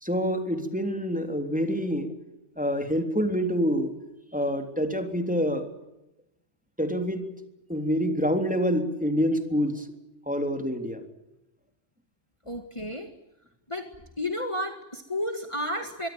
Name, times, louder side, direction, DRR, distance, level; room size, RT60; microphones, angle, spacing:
voice 1, 0.0-2.1 2.6-3.9 4.3-5.7 6.8-7.3 7.7-9.9 10.3-11.0, equal, 5° right, 6 dB, 3.4 m, -26 dB
voice 2, 12.5-13.1 13.7-13.9 14.2-16.1, left 1 dB, 25° left, 6 dB, 2.0 m, -31 dB
24.0 x 23.5 x 9.1 m, 0.91 s
omnidirectional pair, 1.2 m